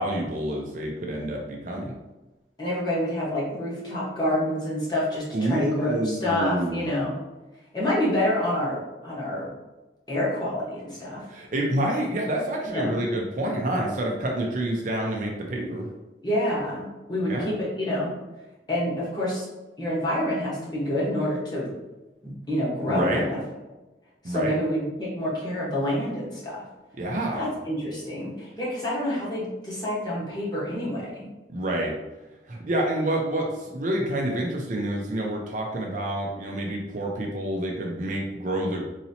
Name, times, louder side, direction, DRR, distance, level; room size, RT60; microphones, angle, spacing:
voice 1, 0.0-1.9 5.3-6.9 11.3-15.9 17.3-17.5 22.9-23.2 24.2-24.6 27.0-27.4 31.5-31.9 32.5-38.9, right 1 dB, 45° right, 0 dB, 0.5 m, -28 dB
voice 2, 2.6-7.2 7.7-9.5 10.1-11.2 12.7-13.0 16.2-18.2 18.7-19.5 19.8-21.7 22.2-23.4 24.2-26.6 27.3-31.3, left 1 dB, 25° left, -7 dB, 1.2 m, -27 dB
4.0 x 2.8 x 2.8 m, 1.1 s
head